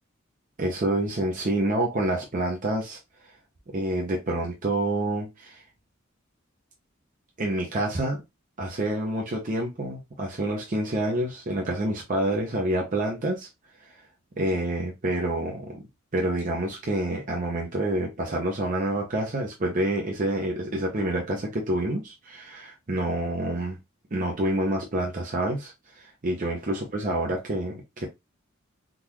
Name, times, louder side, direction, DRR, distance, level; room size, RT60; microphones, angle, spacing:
voice 1, 0.6-3.0 3.7-5.6 7.4-8.2 8.6-13.5 14.4-15.8 16.1-23.8 24.1-28.1, right 1 dB, 40° right, 0.7 m, -28 dB
3.7 x 2.5 x 2.9 m
head